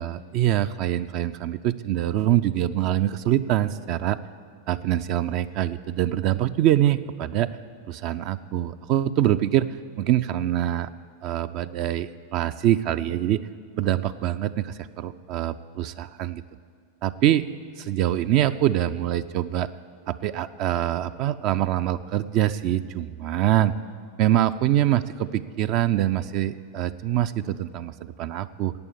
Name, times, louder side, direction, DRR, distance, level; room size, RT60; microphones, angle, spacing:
voice 1, 0.0-4.2 4.7-7.5 7.9-9.7 10.0-10.9 11.2-13.4 13.8-16.4 17.0-17.4 17.8-19.7 20.1-23.7 24.2-28.7, right 12 dB, 40° right, 11 dB, 0.4 m, -24 dB
13.5 x 8.7 x 8.5 m, 2.1 s
figure-of-eight pair, 90°, 0 cm